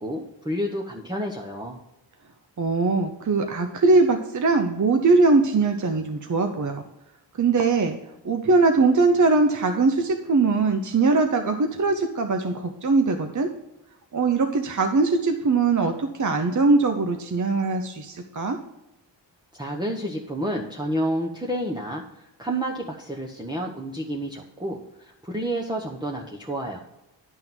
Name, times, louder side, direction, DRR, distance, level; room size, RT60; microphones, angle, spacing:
voice 1, 0.0-1.8 19.6-22.0 22.4-26.8, right 1 dB, 10° right, -2 dB, 1.0 m, -30 dB
voice 2, 2.6-6.8 7.4-8.0 8.2-13.5 14.1-18.6, right 3 dB, 40° right, 5 dB, 0.8 m, -21 dB
11.0 x 3.7 x 6.0 m, 0.92 s
cardioid pair, 70°, 43 cm